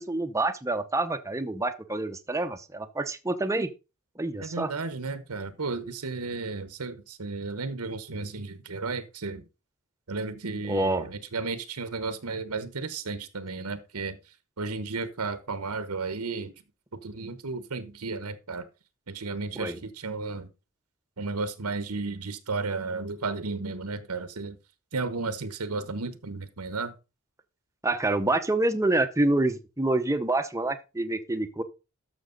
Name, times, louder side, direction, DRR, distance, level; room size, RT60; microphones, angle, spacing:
voice 1, 0.0-3.7 4.2-4.7 10.7-11.1 19.6-19.8 27.8-31.6, right 2 dB, 15° right, 0.8 m, -27 dB
voice 2, 4.4-9.4 10.1-14.2 14.6-16.5 16.9-18.7 19.1-20.5 21.2-24.6 24.9-26.9, right 3 dB, 85° right, 1.1 m, -33 dB
13.0 x 6.2 x 3.9 m
head